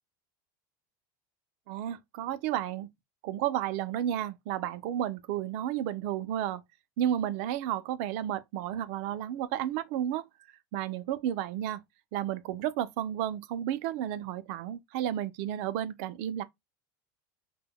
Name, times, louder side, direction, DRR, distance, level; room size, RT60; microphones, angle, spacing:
voice 1, 1.7-2.9 3.2-6.6 7.0-10.3 10.7-11.8 12.1-16.4, right 11 dB, 55° right, 0.4 m, -32 dB
2.1 x 2.1 x 3.5 m
supercardioid pair, 170°, 10 cm